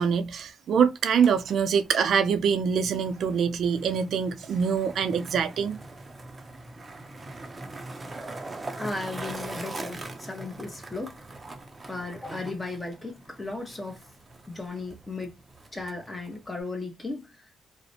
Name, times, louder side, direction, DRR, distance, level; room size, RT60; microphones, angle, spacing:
voice 1, 0.0-5.8, right 7 dB, 65° right, 0.4 m, -24 dB
Skateboard, 1.0-16.6, right 2 dB, 20° right, 0.6 m, -42 dB
voice 2, 8.8-11.2 11.9-14.0 14.5-15.4 15.7-17.5, left 3 dB, 20° left, 0.8 m, -36 dB
2.4 x 2.1 x 2.7 m
cardioid pair, 100°, 0 cm